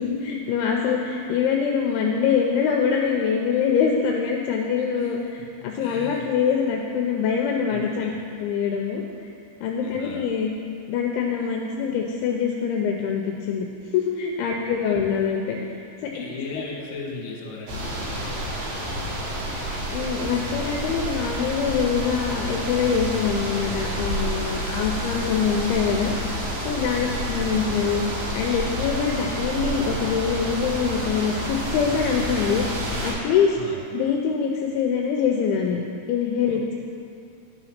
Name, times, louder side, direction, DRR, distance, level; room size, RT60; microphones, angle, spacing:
voice 1, 0.0-8.1 8.4-9.0 9.6-10.5 10.9-13.7 13.9-15.7 16.0-16.2 16.5-16.6 19.9-26.2 26.6-28.0 28.3-32.7 33.0-33.6 33.9-35.8 36.1-36.7, left 6 dB, 80° left, 1 dB, 2.4 m, -24 dB
voice 2, 4.9-6.3 7.7-8.2 9.8-10.2 14.5-14.6 14.9-15.0 16.0-19.1 26.9-27.2 33.5-33.8 36.4-36.7, left 3 dB, 60° left, -4 dB, 2.5 m, -39 dB
sound 1, 17.7-33.1, equal, 80° right, 3.5 m, -29 dB
11.5 x 4.0 x 5.7 m, 2.5 s
omnidirectional pair, 4.6 m